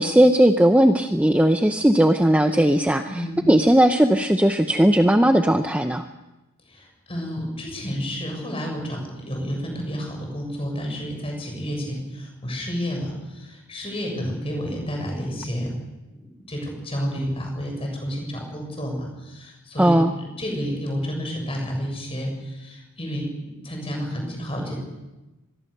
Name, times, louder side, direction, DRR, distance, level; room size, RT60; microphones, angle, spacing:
voice 1, 0.0-6.0 19.8-20.1, right 1 dB, 5° right, 6 dB, 0.7 m, -18 dB
voice 2, 3.0-3.5 6.7-15.7 16.5-24.8, equal, 25° left, 1 dB, 7.2 m, -30 dB
25.0 x 20.5 x 6.7 m, 1.0 s
head